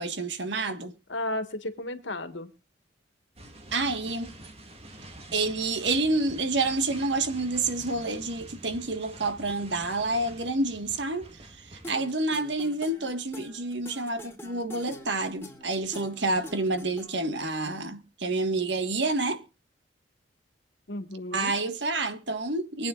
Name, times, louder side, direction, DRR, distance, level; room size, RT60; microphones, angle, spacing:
voice 1, 0.0-0.9 3.7-4.3 5.3-11.3 11.6-19.4 21.3-22.9, right 2 dB, 70° right, 1.5 m, -28 dB
voice 2, 1.1-2.5 20.9-21.5, left 1 dB, 85° left, 1.7 m, -33 dB
sound 1, 3.4-12.0, right 1 dB, 35° right, 2.1 m, -47 dB
sound 2, 11.8-17.4, left 1 dB, 15° left, 2.9 m, -45 dB
24.5 x 9.1 x 2.4 m
head